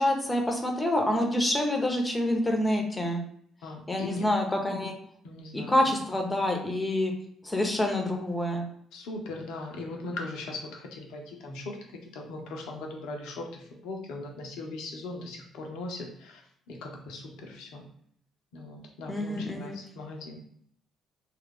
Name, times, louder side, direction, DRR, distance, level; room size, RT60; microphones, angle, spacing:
voice 1, 0.0-3.2 3.9-4.9 5.5-7.1 7.4-8.7 19.1-19.8, left 1 dB, 20° left, 2 dB, 0.8 m, -27 dB
voice 2, 3.6-4.2 5.2-5.9 8.9-16.4 16.7-17.9 18.5-20.4, left 2 dB, 65° left, 2 dB, 0.6 m, -39 dB
2.9 x 2.4 x 3.4 m, 0.66 s
figure-of-eight pair, 45°, 0 cm